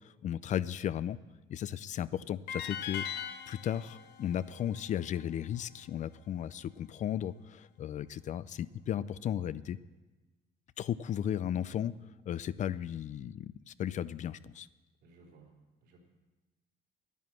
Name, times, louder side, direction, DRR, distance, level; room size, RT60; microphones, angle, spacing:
voice 1, 0.2-1.2 1.5-3.1 3.5-9.8 10.8-11.9 12.3-14.7, left 10 dB, 45° left, 17 dB, 0.4 m, -35 dB
sound 1, 2.5-5.6, left 8 dB, 90° left, 0.9 m, -41 dB
voice 2, 15.0-15.5 15.8-16.0, right 4 dB, 85° right, -1 dB, 3.6 m, -58 dB
10.5 x 9.6 x 7.4 m, 1.2 s
cardioid pair, 110°, 17 cm